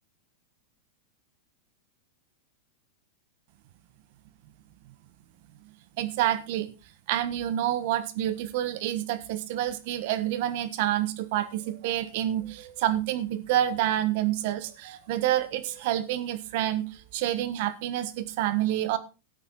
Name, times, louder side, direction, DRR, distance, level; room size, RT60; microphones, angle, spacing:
voice 1, 6.0-6.7 7.1-19.0, right 12 dB, 60° right, 14 dB, 1.3 m, -28 dB
12.5 x 8.8 x 4.0 m, 0.29 s
hypercardioid pair, 115°, 0 cm